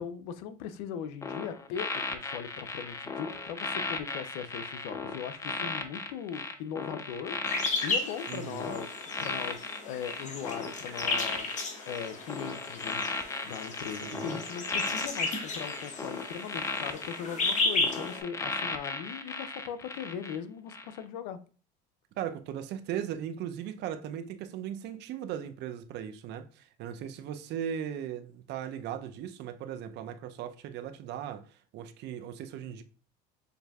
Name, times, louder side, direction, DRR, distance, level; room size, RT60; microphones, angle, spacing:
voice 1, 0.0-11.5 11.9-21.4, left 8 dB, 85° left, 0.5 m, -39 dB
sound 1, 1.2-20.4 20.7-21.0, left 3 dB, 15° left, 0.4 m, -36 dB
sound 2, 7.5-18.2, left 3 dB, 35° left, 0.9 m, -34 dB
voice 2, 8.3-8.8 14.0-14.4 22.2-32.8, right 9 dB, 55° right, 0.5 m, -38 dB
6.6 x 2.6 x 2.3 m
supercardioid pair, 110°, 21 cm